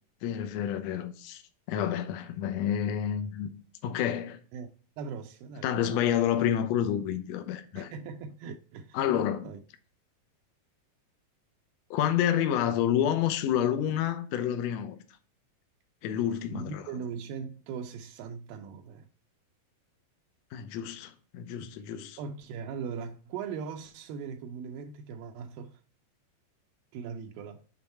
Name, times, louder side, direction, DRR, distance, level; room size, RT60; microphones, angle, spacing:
voice 1, 0.2-1.4 1.7-3.5 3.8-4.4 5.6-7.9 8.9-9.5 11.9-15.0 16.0-16.9 20.5-22.2, left 10 dB, 80° left, 1.5 m, -29 dB
voice 2, 5.0-5.7 7.8-9.6 16.5-19.1 22.2-25.8 26.9-27.6, right 6 dB, 85° right, 2.3 m, -40 dB
7.0 x 3.6 x 4.3 m
omnidirectional pair, 4.0 m